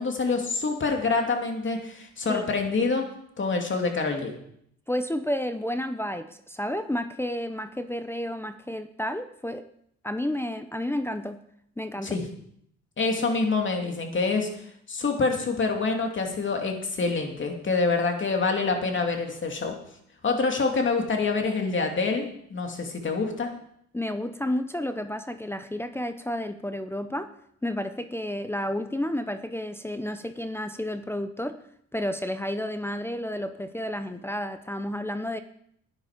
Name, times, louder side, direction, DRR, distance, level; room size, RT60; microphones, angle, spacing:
voice 1, 0.0-3.0 3.4-4.3 12.0-12.3 13.0-14.5 14.9-19.8 20.2-23.5, left 4 dB, 40° left, 3 dB, 2.7 m, -26 dB
voice 2, 4.9-9.7 10.0-11.4 11.8-12.2 23.9-27.3 27.6-31.6 31.9-35.4, left 1 dB, 10° left, 8 dB, 0.7 m, -31 dB
12.0 x 9.7 x 5.1 m, 0.70 s
cardioid pair, 90°, 30 cm